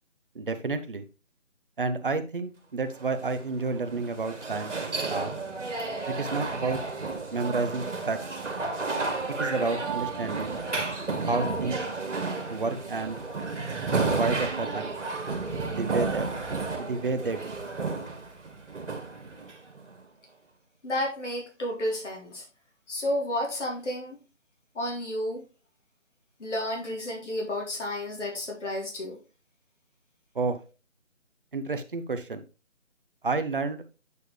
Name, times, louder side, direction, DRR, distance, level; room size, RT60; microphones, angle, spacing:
voice 1, 0.3-1.1 1.8-4.8 5.0-5.4 6.1-6.8 7.3-8.2 9.4-10.6 11.3-11.8 12.5-13.2 14.1-14.9 15.8-16.3 16.8-17.6 30.3-30.6 31.5-32.4 33.2-33.8, right 3 dB, 45° right, 9 dB, 0.8 m, -30 dB
sound 1, 2.9-20.0, right 3 dB, 65° right, 2.0 m, -32 dB
voice 2, 20.8-22.4 22.9-24.2 24.7-25.5 26.4-29.2, left 1 dB, 65° left, -1 dB, 2.7 m, -31 dB
8.2 x 4.5 x 3.3 m, 0.32 s
figure-of-eight pair, 170°, 38 cm